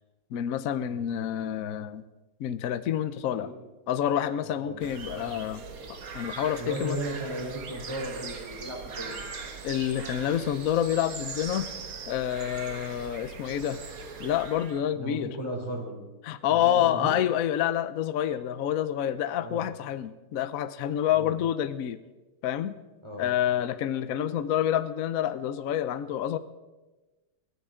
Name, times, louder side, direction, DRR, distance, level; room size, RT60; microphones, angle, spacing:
voice 1, 0.3-2.0 2.4-3.5 3.9-7.0 9.6-11.7 12.1-13.8 14.2-15.4 16.2-22.0 22.4-22.8 23.2-26.4, left 10 dB, 70° left, 12 dB, 0.8 m, -28 dB
voice 2, 4.6-5.3 6.6-9.1 14.9-16.0 16.5-17.2 19.4-19.6 21.1-21.3 23.0-23.3, right 1 dB, 10° right, 0 dB, 3.2 m, -36 dB
sound 1, 4.8-14.8, right 5 dB, 45° right, 1.5 m, -40 dB
22.0 x 16.0 x 3.7 m, 1.2 s
omnidirectional pair, 2.4 m